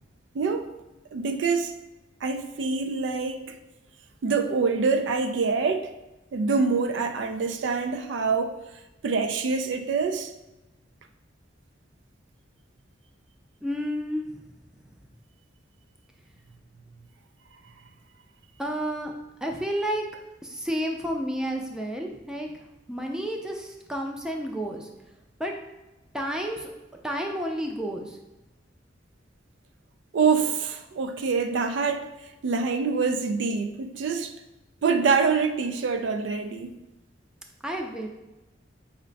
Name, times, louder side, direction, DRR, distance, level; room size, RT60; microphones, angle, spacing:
voice 1, 0.3-0.7 1.1-1.7 2.2-3.6 4.2-5.9 6.3-8.6 9.0-10.3 30.1-32.1 32.4-34.3 34.8-36.8, right 5 dB, 75° right, 0.4 m, -25 dB
voice 2, 13.6-14.4 18.6-19.1 19.4-20.0 20.4-24.9 25.4-25.5 26.1-26.7 27.0-28.2 37.6-38.1, equal, 5° right, 0.4 m, -31 dB
5.6 x 2.1 x 3.9 m
head